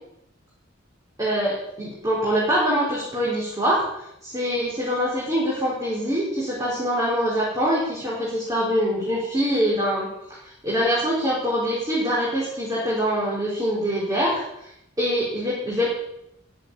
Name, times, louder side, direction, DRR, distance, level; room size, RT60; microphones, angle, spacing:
voice 1, 1.2-3.8 4.2-10.1 10.4-14.7 15.0-15.9, equal, 20° right, -6 dB, 4.8 m, -24 dB
15.0 x 9.9 x 8.6 m, 0.82 s
head